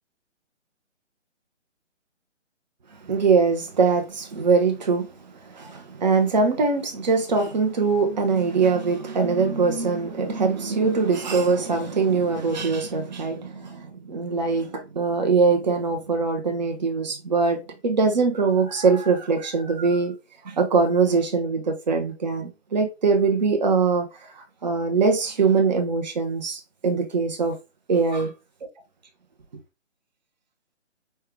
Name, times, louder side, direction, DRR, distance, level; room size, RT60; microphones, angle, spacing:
voice 1, 3.1-5.1 5.5-20.1 20.4-24.1 24.6-27.6 27.9-28.3, right 4 dB, 35° right, 0.8 m, -22 dB
5.5 x 2.3 x 3.3 m
figure-of-eight pair, 150°, 38 cm